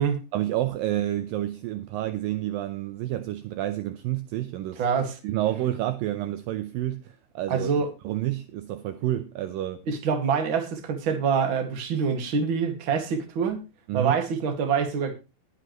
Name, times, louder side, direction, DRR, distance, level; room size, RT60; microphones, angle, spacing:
voice 1, 0.3-4.8 5.2-7.7 8.0-9.8 13.9-14.2, right 14 dB, 80° right, 2.0 m, -29 dB
voice 2, 4.8-5.2 7.5-7.9 9.9-13.6 13.9-15.1, right 6 dB, 40° right, 1.9 m, -25 dB
20.0 x 7.6 x 3.1 m
omnidirectional pair, 4.9 m